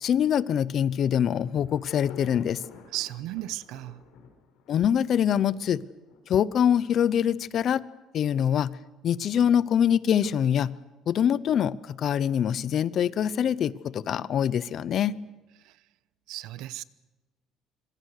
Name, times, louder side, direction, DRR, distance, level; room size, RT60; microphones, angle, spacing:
voice 1, 0.0-2.6 4.7-5.8 6.3-7.8 8.1-8.8 9.0-10.7 11.1-15.2, left 9 dB, 40° left, 0.7 m, -24 dB
Insect / Thunder / Rain, 1.5-5.6 6.1-6.2, left 5 dB, 85° left, 6.2 m, -50 dB
voice 2, 2.9-4.0 16.3-16.8, right 15 dB, 70° right, 0.9 m, -35 dB
26.0 x 25.0 x 6.6 m
cardioid pair, 170°, 0 cm